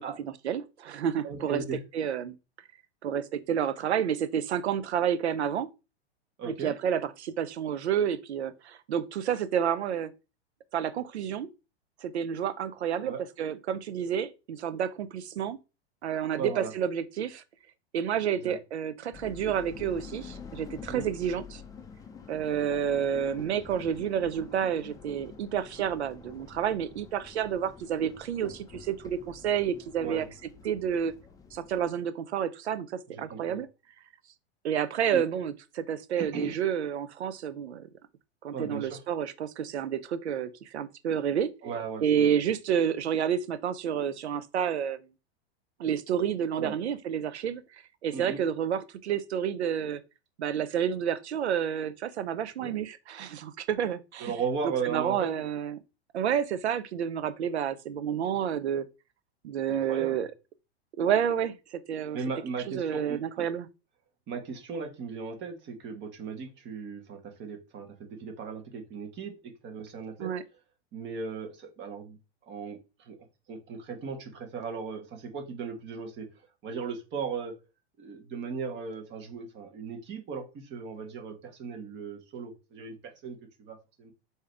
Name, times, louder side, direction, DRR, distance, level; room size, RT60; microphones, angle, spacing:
voice 1, 0.4-1.6 1.9-2.4 3.0-5.7 6.4-10.1 10.7-11.5 12.0-15.6 16.0-17.4 17.9-21.6 22.3-30.2 30.6-31.1 31.5-33.7 34.6-37.9 38.4-41.5 42.0-45.0 45.8-47.6 48.0-50.0 50.4-54.3 54.8-55.8 56.1-58.9 59.4-60.3 61.0-62.2 62.7-63.7 70.2-70.4, right 8 dB, 90° right, 0.6 m, -30 dB
voice 2, 1.2-1.8 6.4-6.7 13.0-13.2 16.4-16.7 18.4-18.6 20.9-21.1 30.0-30.3 33.1-33.6 35.1-35.2 36.2-36.5 38.5-39.0 41.6-42.4 46.6-46.7 48.1-48.4 52.6-52.7 54.2-55.3 59.7-60.1 62.1-63.5 64.3-70.3 70.9-72.2 72.5-73.2 73.5-76.3 76.6-77.5 78.0-84.1, right 5 dB, 35° right, 1.3 m, -37 dB
sound 1, 19.1-31.9, left 6 dB, 10° left, 0.4 m, -48 dB
4.7 x 2.8 x 3.4 m
hypercardioid pair, 115°, 32 cm